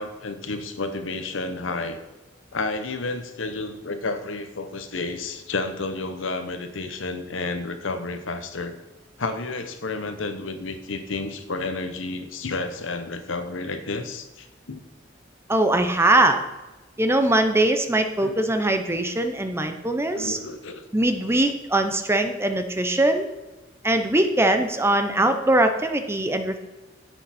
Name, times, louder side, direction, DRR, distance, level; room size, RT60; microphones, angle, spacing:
voice 1, 0.0-2.0 2.5-8.7 9.2-14.8 18.2-18.4 20.1-20.8, left 3 dB, 85° left, 9 dB, 1.0 m, -31 dB
voice 2, 15.5-16.4 17.0-20.4 20.9-23.3 23.8-26.6, right 1 dB, 15° right, 7 dB, 0.7 m, -21 dB
10.5 x 8.2 x 4.3 m, 1.1 s
head